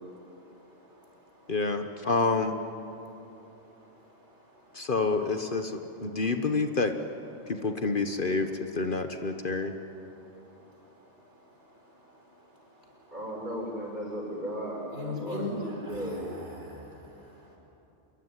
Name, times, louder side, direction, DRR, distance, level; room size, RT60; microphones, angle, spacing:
voice 1, 0.0-1.5 3.0-4.9 6.1-6.2 7.4-7.5 10.1-13.1 14.9-17.5, left 2 dB, 70° right, 0 dB, 5.2 m, -44 dB
voice 2, 1.5-2.6 4.7-6.9 7.5-9.7, left 3 dB, 45° left, 7 dB, 1.3 m, -28 dB
voice 3, 13.1-16.2, equal, 40° right, -2 dB, 7.0 m, -36 dB
26.5 x 22.5 x 9.8 m, 2.9 s
omnidirectional pair, 1.2 m